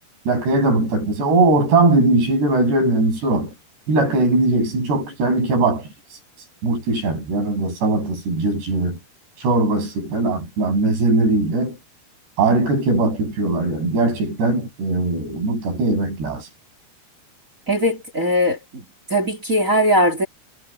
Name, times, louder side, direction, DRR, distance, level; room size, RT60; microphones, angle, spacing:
voice 1, 0.3-3.5 3.9-9.0 9.4-11.8 12.4-16.5, right 2 dB, 75° right, 10.0 m, -20 dB
voice 2, 17.7-20.3, equal, 20° right, 3.6 m, -20 dB
omnidirectional pair, 4.9 m